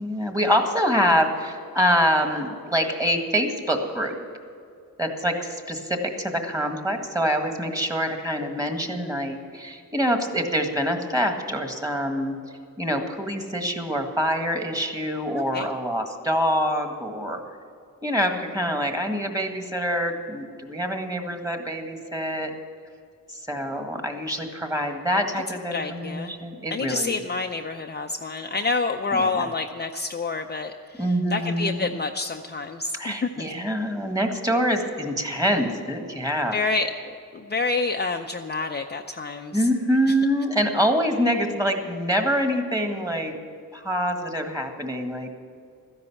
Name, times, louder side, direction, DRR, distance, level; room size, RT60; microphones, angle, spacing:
voice 1, 0.0-4.2 5.0-17.4 18.0-22.5 23.3-27.2 29.1-29.5 31.0-31.9 32.9-36.6 39.5-43.4 43.7-45.3, equal, 10° right, 4 dB, 1.7 m, -25 dB
voice 2, 15.3-15.7 25.7-26.4 26.7-33.5 36.5-39.7 40.1-40.2, left 3 dB, 30° left, 3 dB, 0.6 m, -28 dB
13.5 x 10.5 x 7.1 m, 2.3 s
cardioid pair, 95°, 35 cm